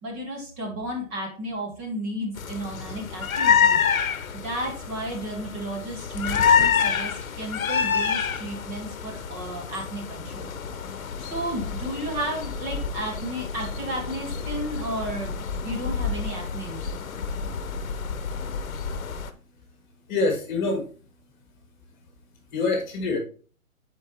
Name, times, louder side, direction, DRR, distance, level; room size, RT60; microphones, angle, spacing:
voice 1, 0.0-10.5 11.0-15.4 15.6-16.8, right 1 dB, 20° right, -1 dB, 1.6 m, -33 dB
sound 1, 2.4-19.3, left 7 dB, 70° left, 0.9 m, -27 dB
voice 2, 20.1-20.9 22.5-23.2, left 3 dB, 35° left, 2 dB, 1.8 m, -25 dB
11.0 x 4.5 x 3.0 m, 0.39 s
hypercardioid pair, 150°, 42 cm